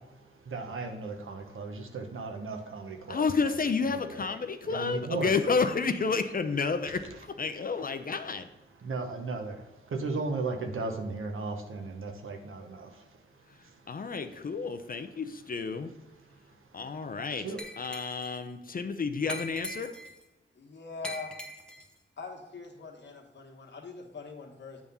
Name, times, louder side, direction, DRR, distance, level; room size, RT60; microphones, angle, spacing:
voice 1, 0.4-3.2 3.9-4.2 4.7-5.3 8.8-13.0 17.4-17.6, right 3 dB, 80° right, 4 dB, 1.0 m, -36 dB
voice 2, 3.1-8.5 13.9-15.9 16.7-19.9, left 4 dB, 45° left, 9 dB, 0.5 m, -30 dB
Glass, 17.6-18.4 19.3-20.2 21.0-21.9, left 1 dB, 5° left, 0.9 m, -41 dB
voice 3, 20.5-21.4 22.2-24.8, left 4 dB, 60° left, 1 dB, 1.4 m, -42 dB
8.8 x 3.6 x 5.4 m, 1.1 s
wide cardioid pair, 125°, 21 cm